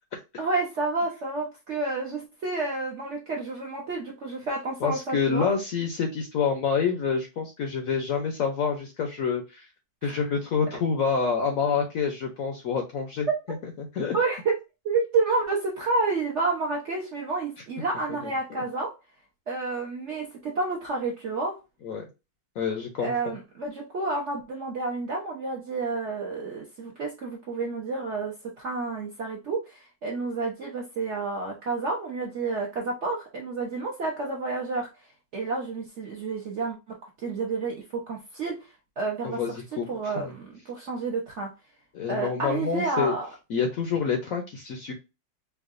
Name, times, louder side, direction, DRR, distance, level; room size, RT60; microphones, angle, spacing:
voice 1, 0.4-5.5 10.0-10.2 13.3-13.4 14.1-14.5 14.8-18.9 19.5-21.6 23.0-34.9 35.3-38.7 39.0-41.5 42.1-43.3, right 3 dB, 55° right, 0 dB, 0.8 m, -30 dB
voice 2, 4.8-9.7 10.0-13.3 13.8-14.1 21.8-22.0 22.6-23.4 39.2-40.3 41.9-43.1 43.5-44.9, left 6 dB, 65° left, 4 dB, 0.9 m, -27 dB
4.7 x 2.3 x 2.5 m, 0.26 s
omnidirectional pair, 2.0 m